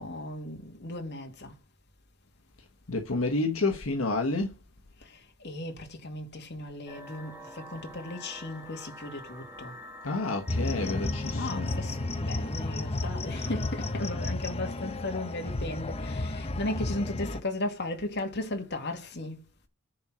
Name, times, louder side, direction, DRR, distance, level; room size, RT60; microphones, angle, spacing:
voice 1, 0.0-1.5 5.4-9.7 11.3-19.4, left 2 dB, 55° left, 2.4 m, -36 dB
voice 2, 2.9-4.5 10.0-11.7, left 3 dB, 75° left, 1.4 m, -29 dB
sound 1, 6.9-14.2, equal, 10° right, 2.4 m, -48 dB
sound 2, 10.5-17.4, left 2 dB, 30° left, 0.9 m, -32 dB
10.5 x 4.4 x 6.2 m
head